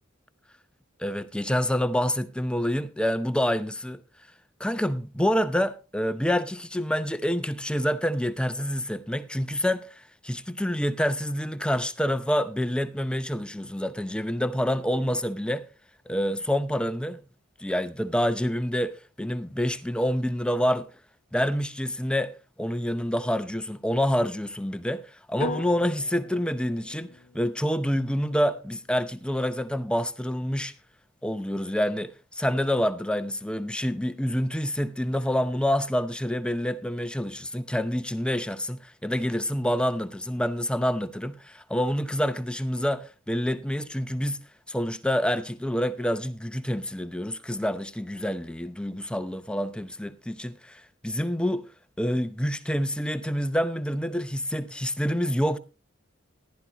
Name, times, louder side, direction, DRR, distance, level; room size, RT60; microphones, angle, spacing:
voice 1, 1.0-4.0 4.6-15.6 16.1-17.2 17.6-20.9 21.3-30.7 31.2-51.7 52.0-55.6, equal, 5° left, 0.6 m, -27 dB
sound 1, 25.4-29.5, left 3 dB, 50° left, 0.7 m, -40 dB
14.5 x 11.5 x 2.9 m
head